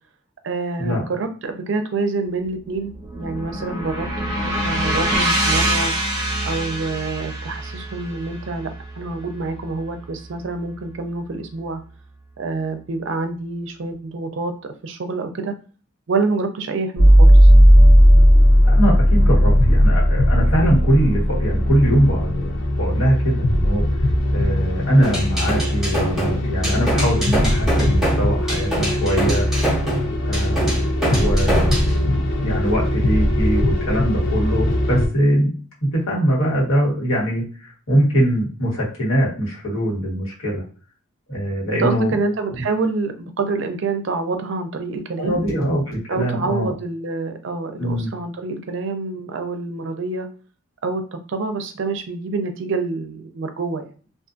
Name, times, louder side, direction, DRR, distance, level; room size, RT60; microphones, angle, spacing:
voice 1, 0.4-4.1 4.7-5.9 6.5-11.8 12.4-15.5 16.1-17.5 41.8-45.4 46.1-50.3 50.8-53.9, right 3 dB, 65° right, 7 dB, 0.4 m, -27 dB
sound 1, 2.4-10.7, right 1 dB, 20° right, 0.6 m, -25 dB
sound 2, 17.0-35.1, equal, 60° left, 0.5 m, -17 dB
voice 2, 18.6-24.0 24.3-29.5 30.2-35.5 35.9-40.6 41.3-42.1 45.2-46.7 47.8-48.1, right 1 dB, 80° left, -4 dB, 1.3 m, -22 dB
sound 3, 25.0-31.9, right 1 dB, 5° right, 0.9 m, -24 dB
2.5 x 2.4 x 2.4 m, 0.39 s
head